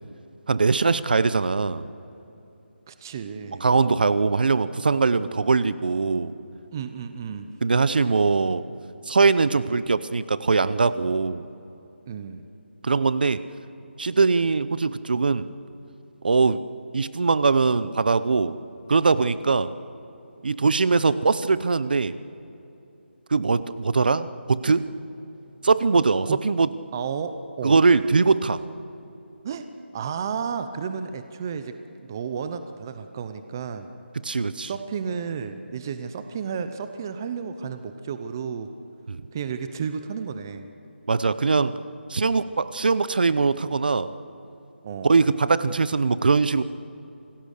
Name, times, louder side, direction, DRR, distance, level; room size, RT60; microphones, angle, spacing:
voice 1, 0.5-1.9 3.6-6.3 7.6-8.6 9.1-11.5 12.8-13.4 14.0-15.5 16.2-16.7 16.9-18.6 18.9-19.7 20.4-22.2 23.3-24.9 25.6-26.7 27.6-28.6 34.2-34.7 39.1-39.2 41.1-41.7 42.1-44.1 45.0-46.6, right 4 dB, 50° right, 16 dB, 0.8 m, -21 dB
voice 2, 2.9-3.7 6.7-7.5 12.1-12.4 26.3-26.4 26.9-27.8 29.4-29.7 29.9-31.8 32.1-33.9 34.6-38.7 39.3-40.6 44.8-45.1, right 6 dB, 20° right, 9 dB, 0.6 m, -32 dB
27.0 x 19.0 x 6.6 m, 2.9 s
figure-of-eight pair, 175°, 6 cm